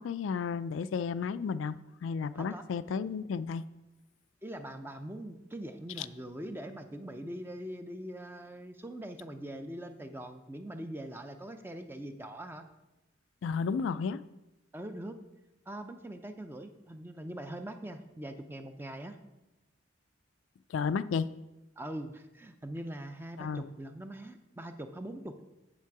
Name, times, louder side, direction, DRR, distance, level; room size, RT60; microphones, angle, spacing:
voice 1, 0.0-3.6 6.0-6.1 13.4-14.2 20.7-21.3 23.4-23.6, left 5 dB, 75° left, 14 dB, 0.3 m, -32 dB
voice 2, 4.4-12.6 14.7-15.2 15.7-19.2 21.8-25.4, right 1 dB, 10° right, 8 dB, 0.5 m, -42 dB
7.6 x 7.3 x 4.7 m, 1.0 s
head